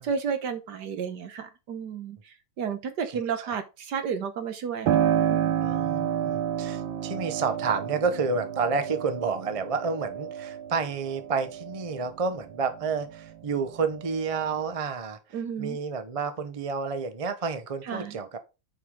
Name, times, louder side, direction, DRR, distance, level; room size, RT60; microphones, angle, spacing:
voice 1, 0.0-5.7 15.3-15.8 17.8-18.2, right 6 dB, 60° right, 1.6 m, -32 dB
Piano, 4.9-13.3 13.7-14.7, right 9 dB, 80° right, 1.6 m, -30 dB
voice 2, 5.6-15.2 15.6-18.4, right 5 dB, 40° right, 0.5 m, -30 dB
9.2 x 5.0 x 3.7 m
omnidirectional pair, 2.1 m